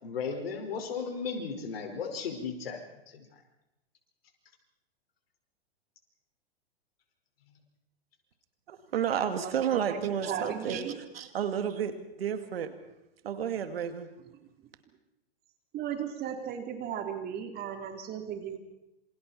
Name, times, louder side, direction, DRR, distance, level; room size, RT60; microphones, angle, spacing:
voice 1, 0.0-2.8 3.1-3.2, left 5 dB, 70° left, 4 dB, 5.2 m, -35 dB
voice 2, 8.7-12.7 13.2-14.1, right 8 dB, 70° right, 9 dB, 2.4 m, -31 dB
voice 3, 9.7-11.0 14.4-14.5 15.7-18.6, right 8 dB, 30° right, 4 dB, 3.6 m, -36 dB
27.5 x 26.5 x 4.4 m, 0.90 s
hypercardioid pair, 115°, 31 cm